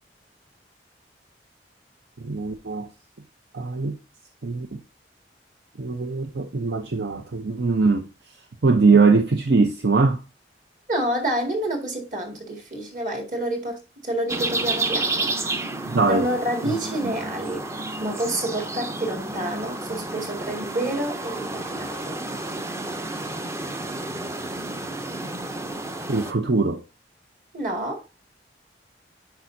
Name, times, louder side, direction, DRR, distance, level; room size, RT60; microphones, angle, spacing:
voice 1, 2.2-2.9 3.5-4.0 4.4-4.8 5.8-8.1 8.6-10.2 15.9-16.3 16.7-16.8 26.1-26.8, right 4 dB, 70° right, 0.7 m, -21 dB
voice 2, 10.9-15.3 16.0-17.7 18.0-22.2 27.5-28.0, right 1 dB, 45° right, 2.2 m, -28 dB
sound 1, 14.3-26.3, right 2 dB, 15° right, 0.5 m, -31 dB
10.5 x 4.8 x 2.7 m
head